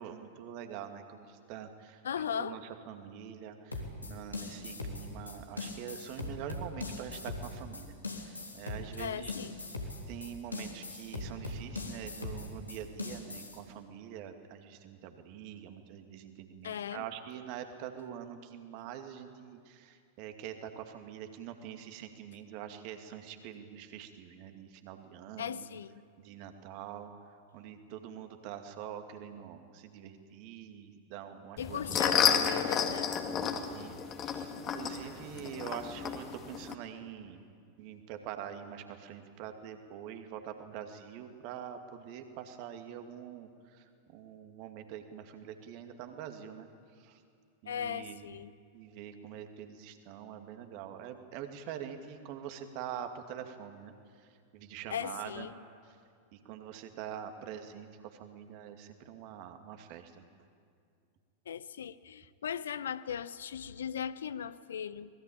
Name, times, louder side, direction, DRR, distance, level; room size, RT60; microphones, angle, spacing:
voice 1, 0.0-7.9 8.2-9.3 10.1-25.7 26.2-27.1 27.5-32.4 33.4-37.4 37.8-43.8 44.1-46.7 47.0-47.2 47.6-48.2 48.7-53.9 54.5-55.5 56.3-60.2, right 9 dB, 45° right, 2.4 m, -45 dB
voice 2, 2.0-2.6 9.0-9.6 16.6-17.0 25.4-25.9 31.6-33.1 47.7-48.5 54.9-55.5 61.5-65.1, left 8 dB, 65° left, 0.7 m, -38 dB
sound 1, 3.7-13.6, left 2 dB, 80° left, 3.4 m, -40 dB
sound 2, 31.6-36.7, left 8 dB, 30° left, 2.3 m, -31 dB
25.0 x 20.5 x 8.8 m
figure-of-eight pair, 90°, 0 cm